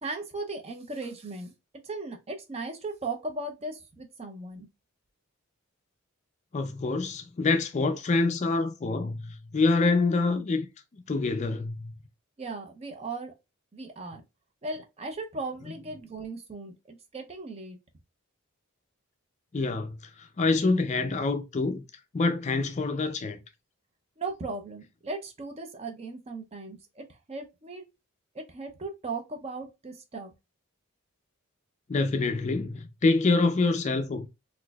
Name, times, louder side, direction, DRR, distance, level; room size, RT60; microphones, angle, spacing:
voice 1, 0.0-1.5 1.8-4.7 12.4-13.3 13.7-14.2 14.6-17.8 24.2-27.9 28.3-30.3, right 3 dB, 30° right, 0.5 m, -37 dB
voice 2, 6.5-10.7 10.9-11.9 19.5-21.8 22.1-23.4 31.9-34.3, left 3 dB, 35° left, 0.4 m, -26 dB
4.1 x 2.5 x 2.2 m
head